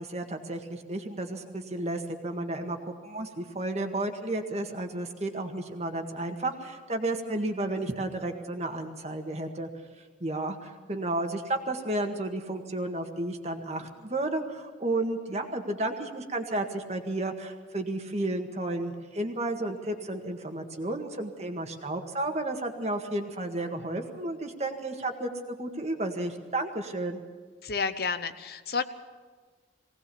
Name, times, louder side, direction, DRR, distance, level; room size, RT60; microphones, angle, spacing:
voice 1, 0.0-9.7 10.2-27.2, right 2 dB, 35° right, 4 dB, 1.8 m, -32 dB
voice 2, 27.6-28.8, left 5 dB, 60° left, 11 dB, 0.9 m, -30 dB
20.5 x 18.0 x 7.0 m, 1.4 s
head